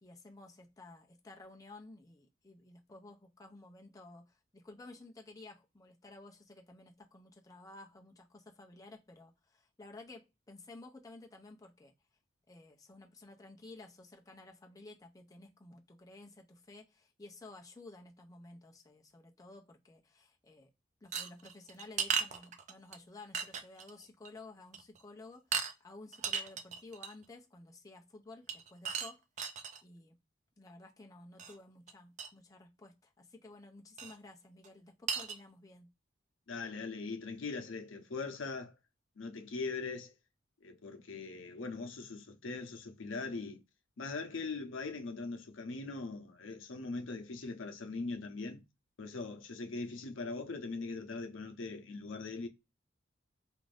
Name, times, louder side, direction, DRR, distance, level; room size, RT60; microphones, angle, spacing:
voice 1, 0.0-11.9 12.5-20.7 21.0-29.2 29.5-30.2 30.6-35.9, left 2 dB, 20° left, 0.5 m, -54 dB
sound 1, 21.1-23.0 23.3-23.9 24.2-24.4 24.7-25.0 25.5-25.7 26.1-27.2 28.5-29.8 31.4-31.5 31.9-32.0 32.2-32.3 34.0-34.2 34.6-34.7 35.1-35.4, right 6 dB, 40° right, 0.4 m, -36 dB
voice 2, 36.5-38.7 39.2-40.1 40.6-43.6 44.0-48.6 49.0-52.5, left 3 dB, 85° left, 0.6 m, -41 dB
2.5 x 2.5 x 3.2 m
head